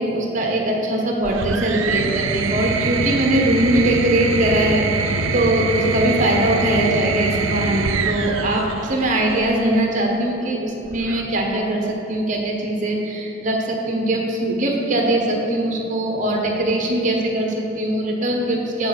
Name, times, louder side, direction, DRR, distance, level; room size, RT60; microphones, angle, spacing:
voice 1, 0.0-18.9, right 1 dB, 40° right, 1 dB, 1.0 m, -21 dB
sound 1, 1.2-9.6 10.8-11.5, right 4 dB, 80° right, 0.5 m, -24 dB
6.6 x 4.5 x 6.5 m, 2.8 s
head